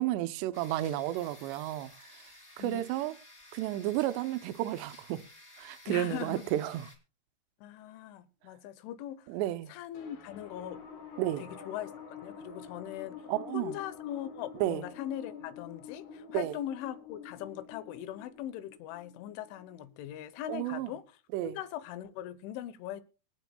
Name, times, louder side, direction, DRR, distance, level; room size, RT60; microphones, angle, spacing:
voice 1, 0.0-1.9 2.6-3.2 3.5-5.2 5.6-6.9 9.3-9.7 11.2-11.4 13.3-13.7 14.6-14.8 16.3-16.5 20.5-20.9 21.3-21.6, right 14 dB, 80° right, 2.7 m, -32 dB
sound 1, 0.5-7.0, left 1 dB, 5° left, 1.9 m, -54 dB
voice 2, 2.6-2.9 5.9-6.5 7.6-9.3 9.7-10.8 11.4-11.9 12.2-13.3 13.5-23.0, left 11 dB, 90° left, 3.3 m, -40 dB
sound 2, 9.9-20.6, left 7 dB, 55° left, 2.7 m, -48 dB
25.0 x 8.9 x 2.2 m
omnidirectional pair, 5.4 m